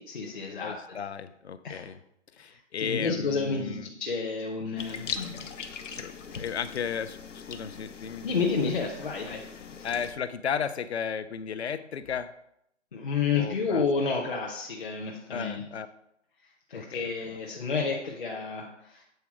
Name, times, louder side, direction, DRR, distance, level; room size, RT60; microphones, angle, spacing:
voice 1, 0.0-1.0 1.6-1.9 2.4-5.4 6.3-6.4 8.2-9.4 9.8-9.9 12.9-15.6 16.7-19.0, left 4 dB, 45° left, -1 dB, 1.0 m, -30 dB
voice 2, 0.6-2.0 2.4-3.9 6.0-8.7 9.8-12.3 13.4-13.9 15.3-15.9 16.7-17.0, left 7 dB, 60° left, 13 dB, 0.6 m, -34 dB
sound 1, 4.8-10.1, left 6 dB, 80° left, 0.9 m, -40 dB
8.1 x 4.0 x 4.9 m, 0.76 s
hypercardioid pair, 170°, 37 cm